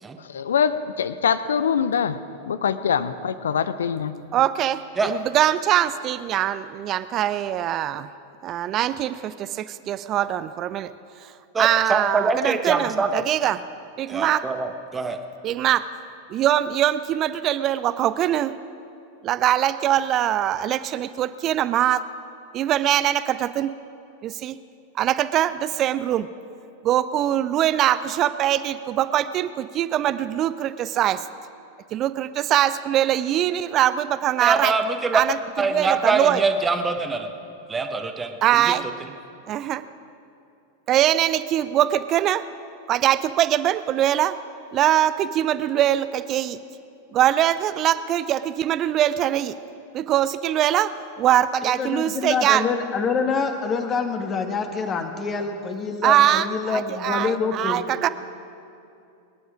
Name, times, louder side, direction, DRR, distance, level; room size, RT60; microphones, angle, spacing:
voice 1, 0.2-2.2 2.5-4.1, left 7 dB, 65° left, 14 dB, 0.6 m, -23 dB
voice 2, 4.3-8.1 8.4-10.9 11.6-13.6 14.0-14.4 15.4-15.8 16.3-18.5 19.2-22.0 22.5-23.7 24.2-24.6 25.0-26.3 26.8-31.2 31.9-34.7 35.1-35.4 35.7-36.4 38.4-38.8 39.5-39.8 40.9-42.4 42.9-44.4 44.7-46.6 47.1-49.6 49.9-50.9 51.2-52.6 56.0-58.1, right 12 dB, 35° right, 14 dB, 0.4 m, -22 dB
voice 3, 11.5-13.1 14.1-15.2 34.4-35.2 35.6-37.3 37.7-38.3 38.6-38.7 39.0-39.1, right 4 dB, 15° right, 6 dB, 1.3 m, -24 dB
voice 4, 51.6-57.8, left 5 dB, 25° left, 5 dB, 1.4 m, -26 dB
23.5 x 10.0 x 5.0 m, 2.6 s
figure-of-eight pair, 90°, 0 cm